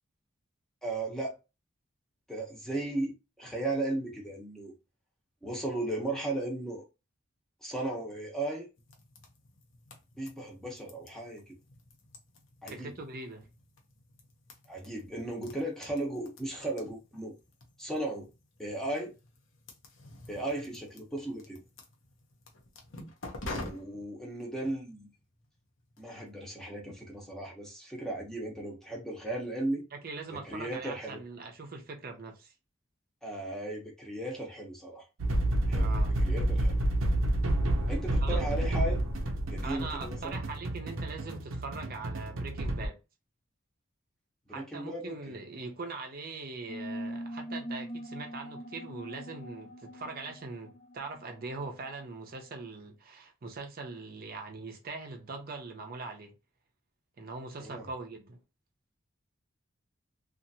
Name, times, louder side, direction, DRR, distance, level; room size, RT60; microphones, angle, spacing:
voice 1, 0.8-1.4 2.3-4.7 5.4-6.8 7.6-8.7 10.2-11.6 12.6-12.9 14.7-17.3 17.8-18.3 18.6-19.1 20.3-21.6 23.5-25.1 26.0-29.9 30.3-31.2 33.2-35.1 35.7-35.9 36.2-36.8 37.9-39.0 39.5-40.4 44.5-45.4 57.6-57.9, right 2 dB, 5° left, 0.8 m, -36 dB
sound 1, 8.8-26.3, left 2 dB, 75° left, 0.8 m, -49 dB
voice 2, 12.7-13.5 29.9-32.5 35.8-36.2 38.2-38.4 39.6-43.0 44.5-56.3 57.2-58.4, right 3 dB, 45° right, 0.6 m, -41 dB
sound 2, 35.2-42.9, right 1 dB, 90° right, 0.6 m, -29 dB
sound 3, 46.7-51.9, equal, 35° left, 0.4 m, -42 dB
2.8 x 2.5 x 2.7 m
head